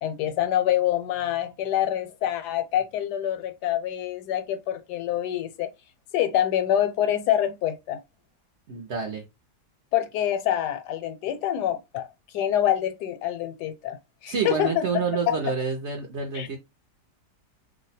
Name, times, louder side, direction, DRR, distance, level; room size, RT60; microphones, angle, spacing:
voice 1, 0.0-5.7 6.1-8.0 8.7-8.8 9.9-12.1 12.3-15.4 16.3-16.5, left 11 dB, 80° left, 1.2 m, -26 dB
voice 2, 8.7-9.3 14.3-16.6, right 5 dB, 60° right, 0.7 m, -28 dB
2.7 x 2.1 x 4.1 m
omnidirectional pair, 1.8 m